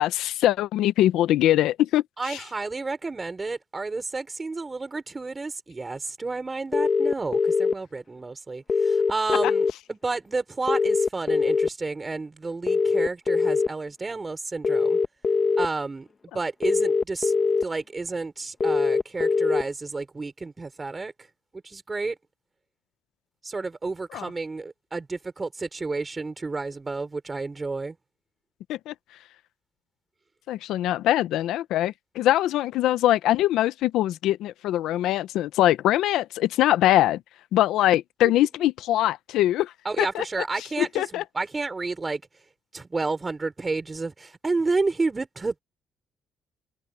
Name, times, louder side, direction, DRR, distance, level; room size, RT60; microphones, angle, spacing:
voice 1, 0.0-2.4 9.4-9.5 24.1-24.3 28.7-29.3 30.5-37.2 37.5-40.3 40.6-41.2, left 13 dB, 85° left, 0.7 m, -23 dB
voice 2, 2.2-15.0 15.6-16.1 16.3-17.3 17.6-21.1 21.6-22.2 23.4-28.0 39.9-42.2 42.7-45.6, right 3 dB, 25° right, 5.6 m, -31 dB
sound 1, 6.7-7.7 8.7-9.7 10.7-11.7 12.7-13.7 14.6-15.7 16.6-17.6 18.6-19.6, left 4 dB, 40° left, 1.1 m, -22 dB
cardioid pair, 90°, 0 cm